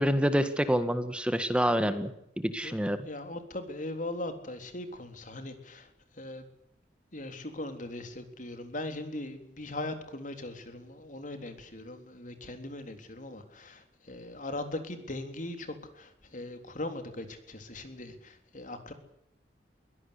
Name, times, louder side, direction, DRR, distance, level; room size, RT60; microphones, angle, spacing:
voice 1, 0.0-2.1 2.4-3.0, equal, 5° right, 10 dB, 1.8 m, -27 dB
voice 2, 3.0-5.9 6.1-6.4 7.1-18.9, left 1 dB, 45° left, 7 dB, 3.7 m, -39 dB
23.0 x 17.5 x 8.4 m, 0.77 s
head